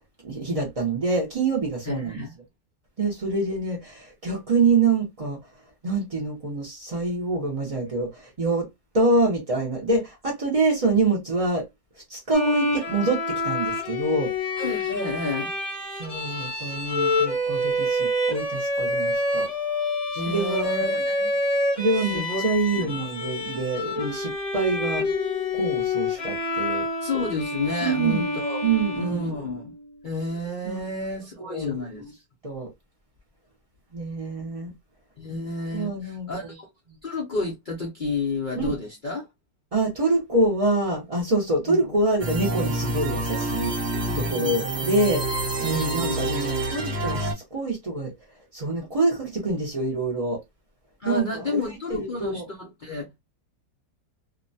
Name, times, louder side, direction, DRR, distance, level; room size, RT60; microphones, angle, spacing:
voice 1, 0.2-2.2 3.0-5.4 5.8-8.1 8.4-8.7 8.9-11.7 12.1-14.3 16.0-19.5 20.3-20.7 21.7-25.0 25.5-26.8 27.8-28.3 28.6-29.3 30.6-30.9 31.4-32.1 32.4-32.7 33.9-34.7 35.7-36.3 38.6-38.7 39.7-43.7 44.1-48.1 48.5-50.4 51.0-52.4, right 3 dB, 60° right, 0.3 m, -26 dB
voice 2, 1.9-2.3 14.6-15.5 20.2-21.3 21.9-22.4 22.7-23.0 25.0-25.1 27.0-28.7 28.9-29.7 30.0-32.0 35.2-36.7 37.0-39.3 41.7-41.8 44.0-44.6 45.9-46.2 51.0-53.2, left 2 dB, 85° left, 0.4 m, -31 dB
Bowed string instrument, 12.3-29.7, left 2 dB, 30° left, 0.6 m, -27 dB
sound 1, 42.2-47.3, right 1 dB, 45° right, 1.1 m, -28 dB
2.7 x 2.1 x 2.6 m
omnidirectional pair, 1.8 m